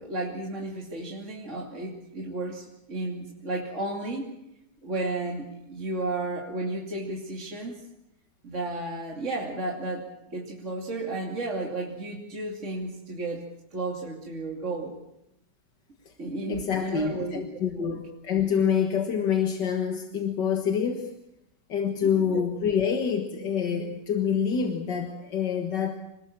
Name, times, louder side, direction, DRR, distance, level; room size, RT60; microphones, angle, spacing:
voice 1, 0.0-4.3 4.8-7.8 8.4-13.4 13.7-15.0 16.2-17.4 17.7-18.0 22.0-22.5, right 2 dB, 40° right, -1 dB, 3.1 m, -33 dB
voice 2, 16.5-21.1 21.7-26.0, left 7 dB, 80° left, 4 dB, 2.2 m, -26 dB
26.5 x 20.0 x 7.4 m, 0.82 s
omnidirectional pair, 1.9 m